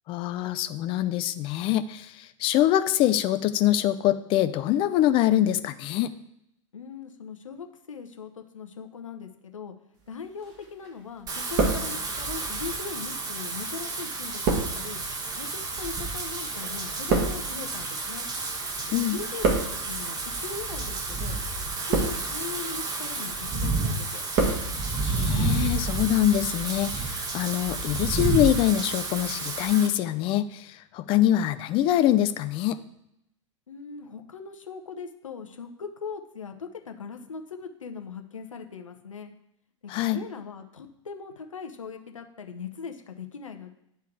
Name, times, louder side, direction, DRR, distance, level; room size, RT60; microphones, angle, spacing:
voice 1, 0.1-6.1 18.9-19.2 25.0-32.8 39.9-40.2, left 12 dB, 30° left, 12 dB, 0.5 m, -24 dB
voice 2, 6.7-9.7 10.1-15.0 15.4-18.3 19.0-19.6 19.8-21.4 21.8-24.2 33.7-39.3 40.0-43.7, left 6 dB, 75° left, 6 dB, 0.8 m, -40 dB
sound 1, 10.4-11.0 11.3-12.3 13.0-18.7 19.0-20.0 20.7-21.0 21.6-22.4 22.9-23.3 23.7-24.7 24.9-25.0, right 4 dB, 40° right, 1.6 m, -29 dB
Wind / Rain, 11.3-29.9, right 3 dB, 20° right, 1.0 m, -31 dB
10.0 x 3.4 x 4.6 m, 0.79 s
figure-of-eight pair, 90°, 17 cm